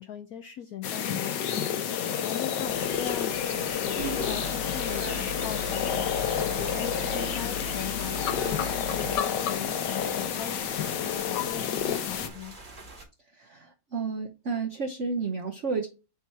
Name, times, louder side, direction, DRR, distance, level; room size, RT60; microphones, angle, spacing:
voice 1, 0.0-12.6, left 9 dB, 90° left, 9 dB, 0.8 m, -40 dB
sound 1, 0.8-12.3, left 8 dB, 65° left, 1.3 m, -30 dB
sound 2, 2.6-13.0, right 2 dB, 25° right, 1.5 m, -46 dB
sound 3, 4.0-9.2, left 1 dB, 90° right, 1.8 m, -37 dB
voice 2, 13.4-15.9, right 4 dB, 60° right, 3 dB, 0.8 m, -31 dB
7.3 x 2.8 x 4.7 m, 0.31 s
omnidirectional pair, 2.2 m